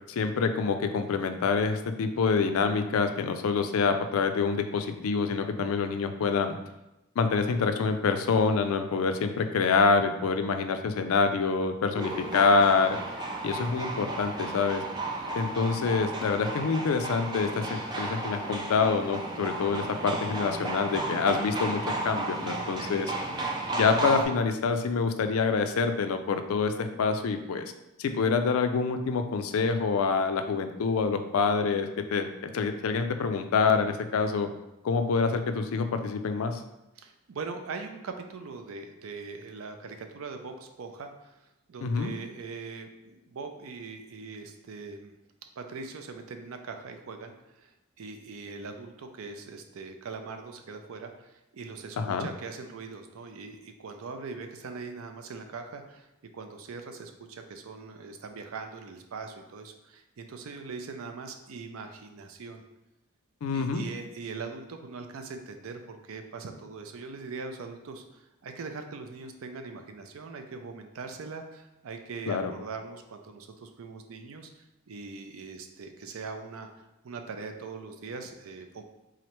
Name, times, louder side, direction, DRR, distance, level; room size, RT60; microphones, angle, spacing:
voice 1, 0.1-6.6 7.2-13.0 13.4-14.8 15.3-23.1 23.7-27.7 28.0-32.3 32.5-34.5 34.8-36.6 41.8-42.1 52.0-52.3 63.4-63.8 72.3-72.5, left 4 dB, 80° left, 8 dB, 0.4 m, -26 dB
sound 1, 12.0-24.2, right 2 dB, 20° right, 0.3 m, -33 dB
voice 2, 37.0-41.4 41.7-45.1 45.6-56.1 56.3-62.6 63.5-78.8, right 4 dB, 75° right, 6 dB, 0.4 m, -41 dB
3.7 x 3.2 x 3.0 m, 0.94 s
head